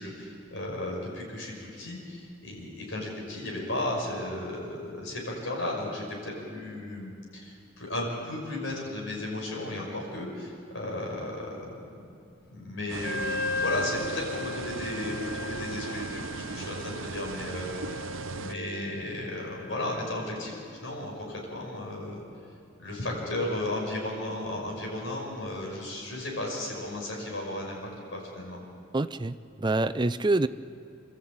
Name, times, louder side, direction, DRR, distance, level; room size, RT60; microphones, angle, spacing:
voice 1, 0.0-11.9 12.5-22.2 22.8-27.8 28.1-28.6, left 1 dB, 65° left, -2 dB, 6.0 m, -35 dB
sound 1, 12.9-18.5, right 5 dB, 75° right, 0.5 m, -38 dB
Wind instrument woodwind instrument, 13.0-20.4, left 3 dB, 50° left, 1.2 m, -37 dB
voice 2, 28.9-30.5, right 2 dB, 20° right, 12 dB, 0.5 m, -26 dB
27.5 x 13.5 x 8.8 m, 2.4 s
head